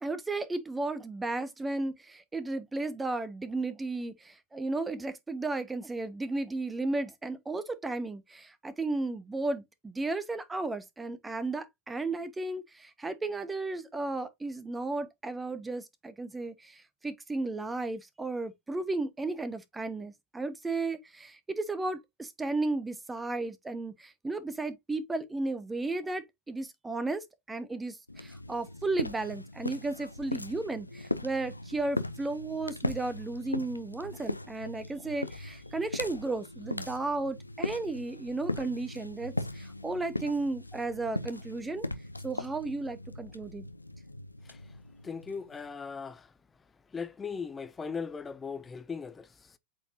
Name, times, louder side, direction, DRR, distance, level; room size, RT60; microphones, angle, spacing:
voice 1, 0.0-41.9 42.2-43.7, right 2 dB, 10° right, 1.0 m, -34 dB
sound 1, 28.1-45.6, left 2 dB, 85° left, 0.5 m, -39 dB
voice 2, 45.0-46.3 46.9-49.6, left 5 dB, 15° left, 0.5 m, -38 dB
8.0 x 4.4 x 2.7 m
figure-of-eight pair, 90°, 0 cm